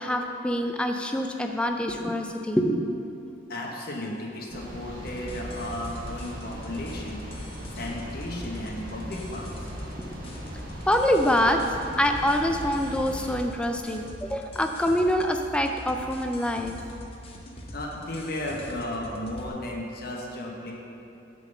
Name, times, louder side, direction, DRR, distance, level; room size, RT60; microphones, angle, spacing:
voice 1, 0.0-2.9 10.0-10.2 10.9-11.6 12.0-16.8, equal, 5° left, 4 dB, 0.3 m, -25 dB
voice 2, 3.5-7.2 7.7-9.7 17.7-20.7, left 1 dB, 50° left, -1 dB, 1.1 m, -34 dB
sound 1, 4.5-13.4, equal, 45° right, 1.3 m, -39 dB
sound 2, 5.1-19.5, left 1 dB, 30° left, 0.7 m, -43 dB
7.4 x 3.9 x 6.6 m, 2.7 s
head